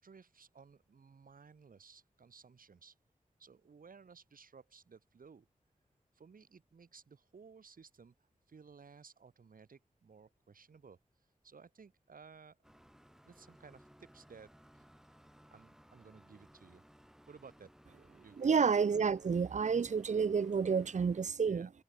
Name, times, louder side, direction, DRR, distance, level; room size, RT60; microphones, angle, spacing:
voice 1, 0.0-2.9 3.4-5.5 6.1-11.0 11.4-12.6 13.2-14.9 15.2-16.8 17.3-17.7 18.2-18.5 21.4-21.7, right 5 dB, 90° right, 4.6 m, -58 dB
sound 1, 12.6-21.3, equal, 5° right, 6.1 m, -62 dB
voice 2, 18.4-21.7, right 6 dB, 60° right, 0.7 m, -30 dB
wide cardioid pair, 95°, 14 cm